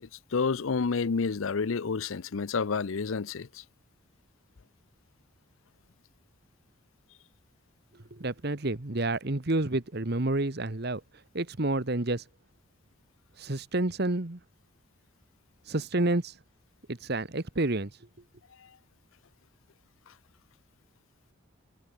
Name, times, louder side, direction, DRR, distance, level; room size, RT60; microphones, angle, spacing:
voice 1, 0.0-3.6 18.6-18.7 20.1-20.2, left 5 dB, 75° left, 0.6 m, -30 dB
voice 2, 8.1-11.0 11.3-12.2 13.4-14.4 15.7-16.4 16.9-17.9, right 2 dB, 50° right, 1.3 m, -29 dB
head